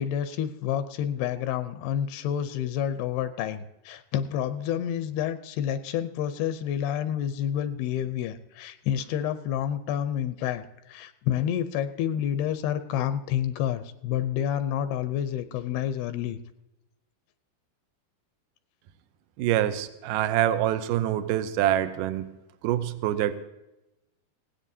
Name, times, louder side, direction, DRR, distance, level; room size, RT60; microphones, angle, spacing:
voice 1, 0.0-16.4, left 10 dB, 85° left, 11 dB, 2.6 m, -29 dB
voice 2, 19.4-22.3 22.6-23.3, right 12 dB, 80° right, 11 dB, 1.9 m, -25 dB
20.0 x 16.5 x 2.7 m, 0.94 s
omnidirectional pair, 4.5 m